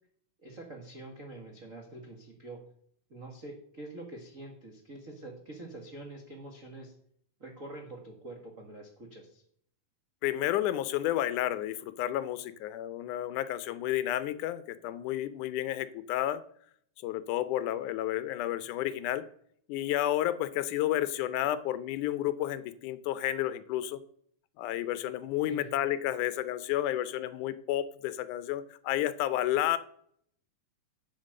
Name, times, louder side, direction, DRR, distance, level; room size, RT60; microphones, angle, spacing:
voice 1, 0.4-2.6 3.1-6.9 7.4-9.4 25.4-25.7, right 2 dB, 55° right, 1 dB, 0.9 m, -45 dB
voice 2, 10.2-16.4 17.0-19.2 19.7-24.0 24.6-29.8, left 13 dB, 75° left, 14 dB, 1.9 m, -31 dB
8.0 x 7.9 x 6.5 m, 0.64 s
omnidirectional pair, 4.1 m